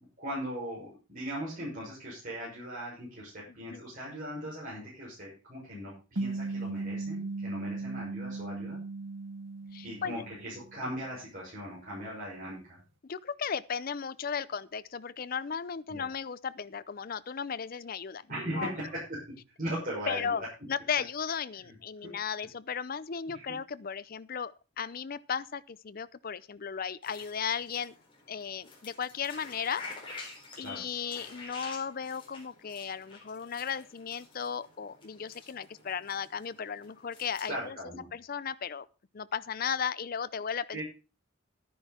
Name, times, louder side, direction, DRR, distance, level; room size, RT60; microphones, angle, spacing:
voice 1, 0.0-8.8 9.8-12.8 15.9-16.0 18.3-19.0 19.6-20.5 21.7-21.8 22.0-22.1 23.3-23.4 30.6-30.8 37.5-38.1 40.7-40.8, equal, 40° right, 6.2 m, -39 dB
sound 1, 6.2-10.8, right 3 dB, 70° right, 1.1 m, -37 dB
voice 2, 9.7-10.2 13.0-18.7 20.1-20.4 20.7-27.9 28.3-29.8 30.6-37.8 38.1-38.9 39.1-40.8, left 7 dB, 45° left, 0.5 m, -35 dB
sound 2, 27.0-37.7, left 3 dB, 25° left, 4.1 m, -49 dB
12.0 x 10.0 x 4.3 m
head